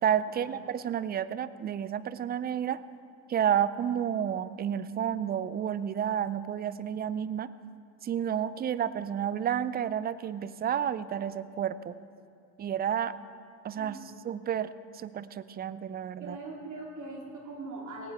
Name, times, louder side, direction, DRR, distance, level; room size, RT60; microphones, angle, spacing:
voice 1, 0.0-2.8 3.3-7.5 8.0-11.9 12.6-13.2 13.6-16.4, right 9 dB, 20° right, 16 dB, 0.5 m, -31 dB
voice 2, 13.7-14.2 16.2-18.1, right 2 dB, 40° right, -1 dB, 2.7 m, -41 dB
18.0 x 17.5 x 3.6 m, 2.3 s
hypercardioid pair, 75°, 47 cm